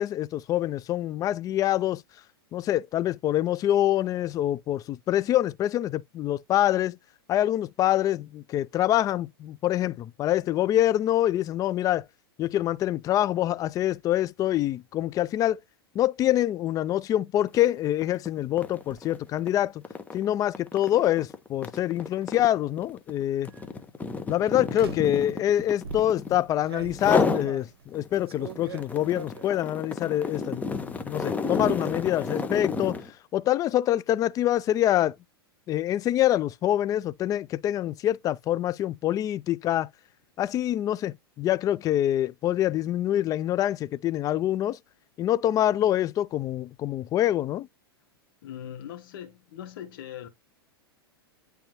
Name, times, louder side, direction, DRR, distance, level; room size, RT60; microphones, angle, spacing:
voice 1, 0.0-2.0 2.5-7.0 7.3-12.0 12.4-15.6 15.9-19.8 20.1-23.5 24.3-33.0 33.3-35.1 35.7-39.9 40.4-44.8 45.2-47.7, left 12 dB, 30° left, 0.4 m, -25 dB
sound 1, 17.5-17.7 18.0-26.5 26.9-27.5 27.9-33.1, left 4 dB, 10° left, 0.9 m, -31 dB
sound 2, 18.5-19.0 20.7-21.0 21.8-22.6 23.3-23.6 24.7-25.2 25.8-29.6 30.0-30.5 30.8-31.4, right 6 dB, 75° right, 0.7 m, -44 dB
voice 2, 48.4-50.3, left 10 dB, 60° left, 1.2 m, -40 dB
10.0 x 3.4 x 2.9 m
hypercardioid pair, 100°, 13 cm